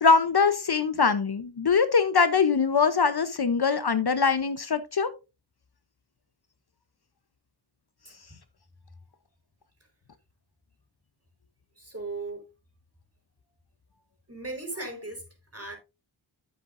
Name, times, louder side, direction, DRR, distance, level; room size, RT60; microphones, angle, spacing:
voice 1, 0.0-5.1, left 5 dB, 50° left, 0.8 m, -22 dB
voice 2, 11.8-12.4 14.3-15.2 15.5-15.8, right 2 dB, 30° right, 4.4 m, -36 dB
11.0 x 7.6 x 2.5 m
wide cardioid pair, 50°, 48 cm